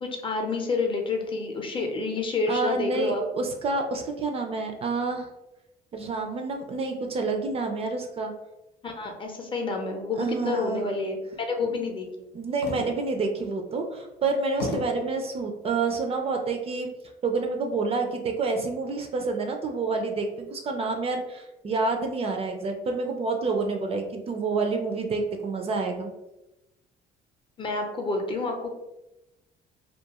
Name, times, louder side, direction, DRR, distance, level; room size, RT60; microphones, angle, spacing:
voice 1, 0.0-3.2 8.8-12.1 27.6-28.7, left 3 dB, 30° left, 3 dB, 0.6 m, -29 dB
voice 2, 2.5-5.3 5.9-8.3 10.2-10.9 12.3-16.9 17.2-26.1, right 3 dB, 35° right, 3 dB, 0.4 m, -28 dB
sound 1, 12.6-13.2 13.8-13.9 14.6-15.1 15.9-16.3, left 3 dB, 80° left, 0.6 m, -34 dB
2.3 x 2.3 x 2.8 m, 0.94 s
cardioid pair, 110°, 17 cm